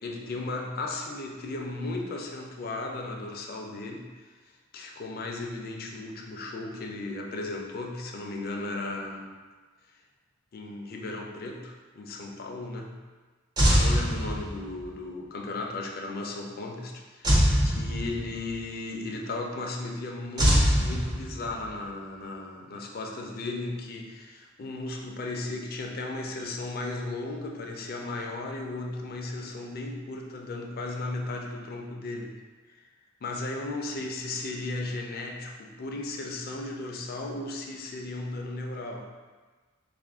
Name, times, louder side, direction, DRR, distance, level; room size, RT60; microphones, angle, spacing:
voice 1, 0.0-4.3 4.7-9.3 10.5-13.0 13.7-32.4 32.6-32.8 33.2-39.1, left 2 dB, 50° left, 1 dB, 0.4 m, -35 dB
sound 1, 13.6-14.8 17.2-18.5 20.4-21.7, equal, 20° right, 0.5 m, -23 dB
3.5 x 2.4 x 3.5 m, 1.3 s
head